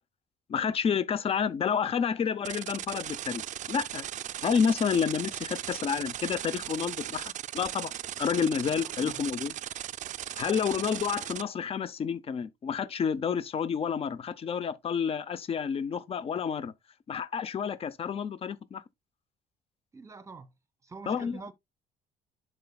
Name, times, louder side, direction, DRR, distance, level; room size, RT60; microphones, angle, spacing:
voice 1, 0.5-3.4 3.7-4.0 4.4-7.9 8.2-9.5 10.4-16.7 17.1-18.8 21.1-21.4, left 7 dB, 35° left, 0.6 m, -29 dB
sound 1, 2.4-11.4, right 12 dB, 45° right, 0.4 m, -38 dB
voice 2, 8.7-9.2 19.9-20.5 20.8-21.5, right 4 dB, 20° right, 0.9 m, -46 dB
11.0 x 4.4 x 2.3 m
cardioid pair, 110°, 17 cm